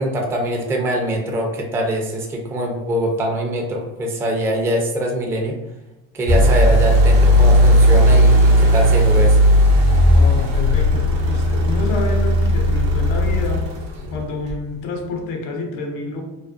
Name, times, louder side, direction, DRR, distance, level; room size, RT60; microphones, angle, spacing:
voice 1, 0.0-5.6 6.1-9.4, equal, 5° right, 1 dB, 0.3 m, -23 dB
sound 1, 6.3-14.6, equal, 65° right, 0.7 m, -15 dB
voice 2, 10.1-13.7 14.1-16.2, left 3 dB, 80° left, 3 dB, 0.7 m, -28 dB
2.5 x 2.1 x 2.4 m, 0.99 s
supercardioid pair, 85°, 37 cm